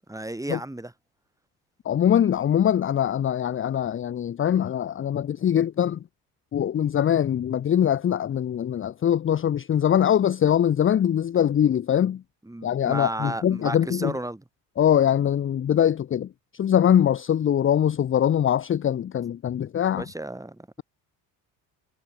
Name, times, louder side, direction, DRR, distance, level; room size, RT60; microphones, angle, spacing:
voice 1, 0.1-0.9 12.4-14.4 20.0-20.7, right 1 dB, 10° right, 5.8 m, -33 dB
voice 2, 1.8-6.0 6.5-12.2 12.6-14.1 14.8-16.3 16.5-20.0, left 9 dB, 30° left, 0.7 m, -22 dB
supercardioid pair, 75°, 40 cm